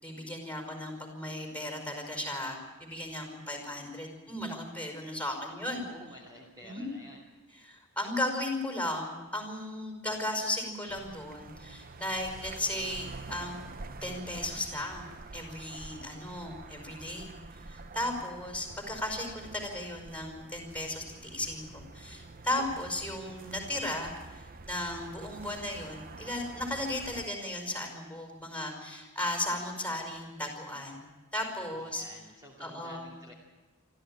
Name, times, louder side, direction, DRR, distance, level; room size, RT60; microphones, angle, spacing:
voice 1, 0.0-5.8 6.6-6.9 7.6-13.6 14.0-15.1 15.3-17.3 17.6-31.0 31.3-32.0 32.6-33.1, left 1 dB, 5° left, 3 dB, 5.3 m, -36 dB
voice 2, 5.7-7.2 31.7-33.3, equal, 20° right, -2 dB, 2.5 m, -50 dB
sound 1, 10.9-27.3, right 3 dB, 40° right, 0.9 m, -47 dB
25.0 x 14.0 x 8.9 m, 1.3 s
head